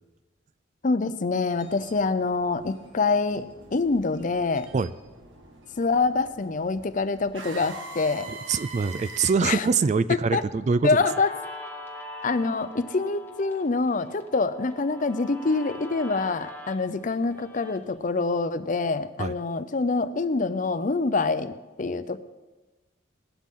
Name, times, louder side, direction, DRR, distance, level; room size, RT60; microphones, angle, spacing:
voice 1, 0.8-4.7 5.8-8.3 9.4-9.7 10.1-10.4 10.8-11.3 12.2-22.2, left 3 dB, 45° left, 13 dB, 0.6 m, -26 dB
sound 1, 1.4-9.3, right 3 dB, 80° right, 1.8 m, -44 dB
voice 2, 8.3-10.9 19.2-19.3, right 5 dB, 40° right, 15 dB, 0.3 m, -24 dB
Guitar, 11.0-18.0, left 1 dB, 10° left, 1.2 m, -42 dB
17.5 x 11.5 x 3.7 m, 1.2 s
head